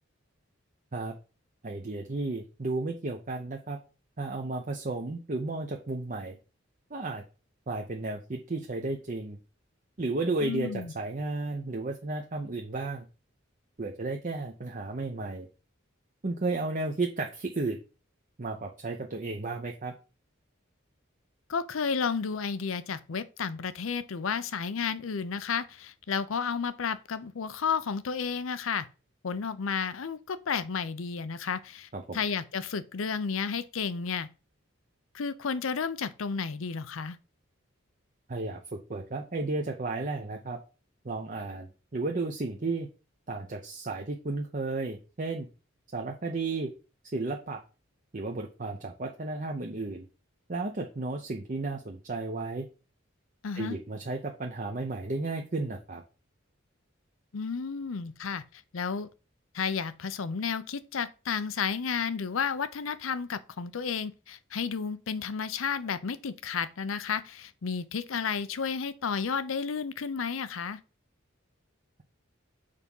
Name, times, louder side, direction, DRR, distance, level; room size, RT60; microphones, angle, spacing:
voice 1, 1.6-3.8 4.2-6.4 6.9-7.2 7.7-9.4 10.0-13.1 13.8-15.5 16.2-17.8 18.4-19.9 31.9-32.2 38.3-40.6 41.0-42.9 43.3-45.5 45.9-46.7 47.1-47.6 48.1-50.1 50.5-52.7 53.5-56.0, right 3 dB, 40° right, 0.7 m, -33 dB
voice 2, 10.4-10.9 21.5-28.9 29.2-34.3 35.1-37.2 53.4-53.8 57.3-59.1 59.5-70.8, left 6 dB, 85° left, 0.6 m, -32 dB
6.6 x 3.5 x 5.4 m
head